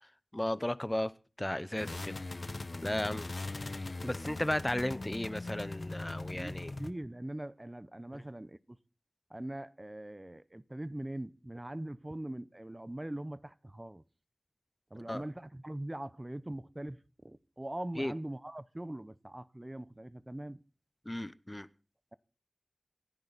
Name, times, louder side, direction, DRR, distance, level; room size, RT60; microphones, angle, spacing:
voice 1, 0.3-1.1 1.4-2.2 2.8-3.3 4.0-6.7 8.1-8.2 15.1-15.2 18.0-18.1 21.1-21.7, left 1 dB, 20° left, 0.8 m, -34 dB
sound 1, 1.8-6.9, left 2 dB, 65° left, 1.2 m, -40 dB
voice 2, 6.3-8.8 9.3-14.0 14.9-20.6, right 1 dB, 30° right, 0.9 m, -42 dB
27.5 x 11.0 x 4.1 m
wide cardioid pair, 50°, 0 cm